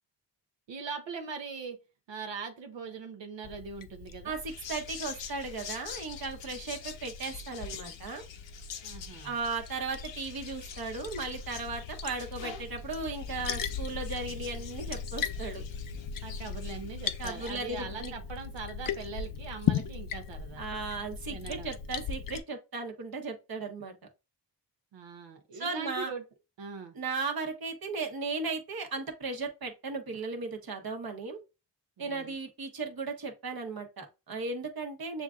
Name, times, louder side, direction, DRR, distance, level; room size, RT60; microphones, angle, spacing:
voice 1, 0.7-1.8 2.1-4.4 8.8-9.4 16.2-20.6 21.3-21.7 24.9-26.2 26.6-26.9 32.0-32.3, right 5 dB, 75° right, 0.8 m, -41 dB
Liquid, 3.4-22.4, left 7 dB, 50° left, 0.6 m, -38 dB
voice 2, 4.2-8.2 9.2-15.6 17.2-18.1 20.6-23.9 25.5-26.1 26.9-31.4 32.0-35.2, right 3 dB, 50° right, 1.1 m, -36 dB
sound 1, 4.5-17.6, left 8 dB, 75° left, 0.8 m, -47 dB
7.0 x 2.5 x 2.4 m
cardioid pair, 55°, 45 cm